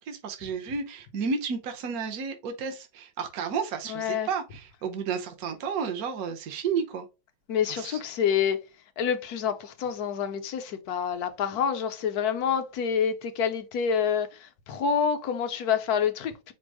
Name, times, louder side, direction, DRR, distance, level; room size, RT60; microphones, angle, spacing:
voice 1, 0.0-7.1 7.7-8.0, right 6 dB, 65° right, 1.3 m, -32 dB
voice 2, 3.9-4.3 7.5-8.6 9.0-16.5, left 7 dB, 70° left, 1.1 m, -27 dB
5.2 x 2.0 x 4.6 m
omnidirectional pair, 1.8 m